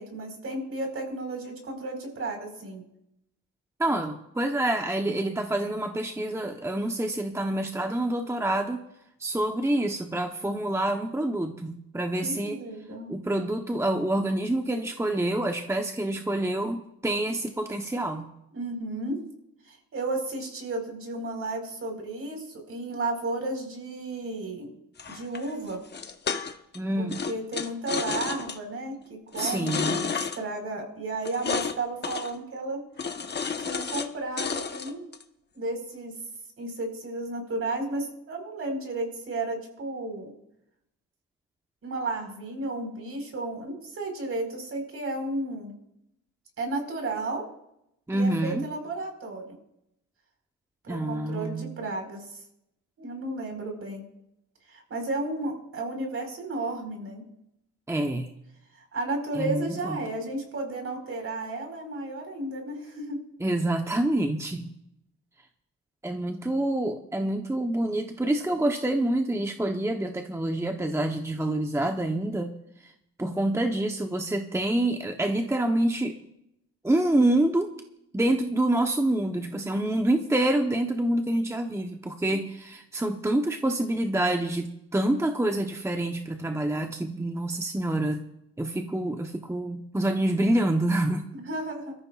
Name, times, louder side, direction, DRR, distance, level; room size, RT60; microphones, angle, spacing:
voice 1, 0.0-2.8 12.2-13.1 18.5-19.2 19.7-24.7 25.1-25.8 27.0-32.8 33.6-35.1 35.5-36.1 36.6-40.3 41.8-45.7 46.6-47.4 48.1-49.6 50.8-52.4 53.0-54.0 54.7-57.2 58.7-63.2 82.3-82.4 91.3-91.9, right 2 dB, 50° right, 2 dB, 4.8 m, -33 dB
voice 2, 3.8-8.8 9.2-12.6 13.1-18.3 26.7-27.2 29.4-30.0 48.1-48.7 50.9-51.7 57.9-58.3 59.3-60.0 63.4-64.7 66.0-72.5 72.8-72.9 73.2-76.1 76.8-77.7 78.1-88.2 88.6-91.3, right 1 dB, 10° right, 4 dB, 1.0 m, -27 dB
sound 1, 25.0-26.8 27.1-28.6 29.3-30.4 31.2-31.8 32.0-32.3 33.0-34.1 34.4-35.2, left 5 dB, 35° left, 1.1 m, -31 dB
23.5 x 14.0 x 2.5 m, 0.81 s
cardioid pair, 90°, 30 cm